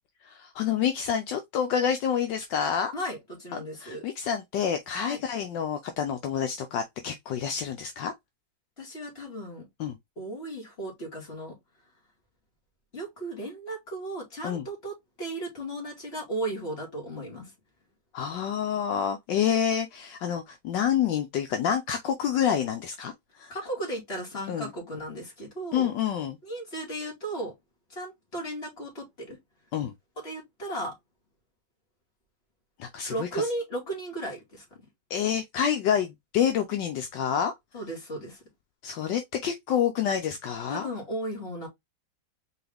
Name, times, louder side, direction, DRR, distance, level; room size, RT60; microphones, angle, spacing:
voice 1, 0.2-2.9 3.5-8.1 9.8-10.0 14.4-14.6 18.1-23.5 24.5-24.7 25.7-26.4 29.7-29.9 32.8-33.5 35.1-37.5 38.8-40.9, left 8 dB, 75° left, 1.3 m, -28 dB
voice 2, 2.9-4.0 5.1-5.2 8.8-9.7 10.2-11.6 12.9-17.5 23.5-25.9 26.4-27.5 27.9-29.4 30.2-30.9 33.1-34.6 37.7-38.4 40.7-41.7, right 1 dB, 30° left, 2.6 m, -35 dB
4.7 x 3.3 x 3.4 m
omnidirectional pair, 2.1 m